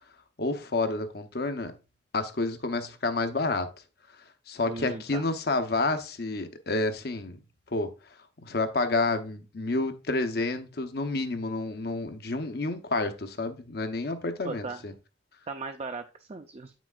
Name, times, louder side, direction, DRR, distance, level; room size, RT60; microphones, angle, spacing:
voice 1, 0.4-1.7 2.1-3.7 4.5-7.4 7.7-7.9 8.4-14.9, left 3 dB, 60° left, 0.8 m, -29 dB
voice 2, 4.6-5.3 14.4-14.8 15.5-16.7, right 3 dB, 35° right, 0.5 m, -37 dB
8.1 x 6.1 x 2.4 m
head